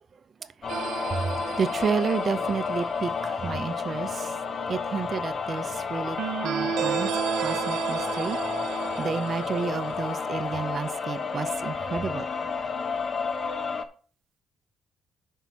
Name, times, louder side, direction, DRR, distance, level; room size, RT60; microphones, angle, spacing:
sound 1, 0.6-13.9, left 5 dB, 45° left, 1.1 m, -31 dB
sound 2, 0.7-3.0 6.2-10.6, right 9 dB, 85° right, 0.6 m, -33 dB
voice 1, 1.1-4.3 4.7-7.1 7.4-8.4 8.8-12.2, right 6 dB, 45° right, 0.7 m, -31 dB
5.9 x 5.5 x 7.0 m
cardioid pair, 90°, 0 cm